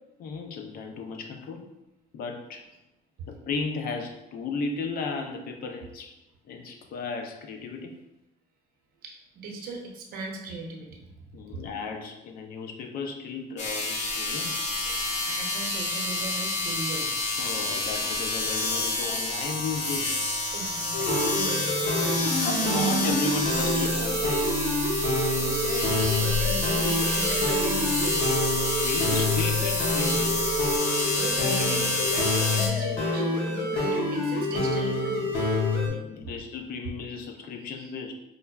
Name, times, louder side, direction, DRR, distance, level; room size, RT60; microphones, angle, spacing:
voice 1, 0.2-1.6 2.1-2.7 3.3-6.1 6.5-8.0 11.3-14.7 17.4-20.2 22.4-24.8 28.8-30.4 35.8-38.1, left 4 dB, 60° left, 4 dB, 0.5 m, -35 dB
voice 2, 9.0-11.1 14.8-17.4 20.5-23.0 25.0-25.1 25.4-28.4 30.9-35.3 35.9-36.0 37.8-37.9, right 3 dB, 65° right, 1 dB, 0.7 m, -38 dB
sound 1, 13.6-32.7, left 2 dB, 45° left, 0.9 m, -29 dB
sound 2, 20.9-35.9, left 2 dB, 85° left, 0.9 m, -27 dB
sound 3, 23.5-30.8, right 5 dB, 30° right, 0.4 m, -33 dB
5.1 x 2.2 x 2.3 m, 0.91 s
cardioid pair, 110°, 17 cm